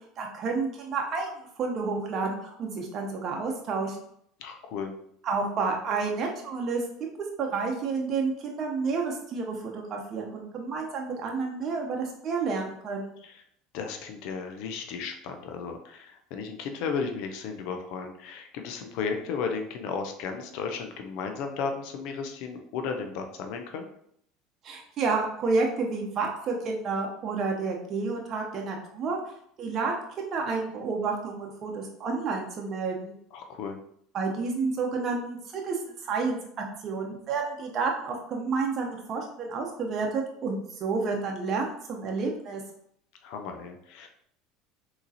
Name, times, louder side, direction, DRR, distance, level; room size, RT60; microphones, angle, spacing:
voice 1, 0.2-1.3 1.6-4.0 5.2-6.8 7.4-13.1 24.6-29.2 29.6-33.2 34.1-42.6, right 4 dB, 45° right, 0 dB, 0.7 m, -30 dB
voice 2, 4.4-4.9 13.2-13.4 13.7-23.9 33.3-33.8 43.2-44.1, left 5 dB, 65° left, 5 dB, 0.5 m, -34 dB
3.8 x 2.9 x 2.7 m, 0.68 s
hypercardioid pair, 80°, 0 cm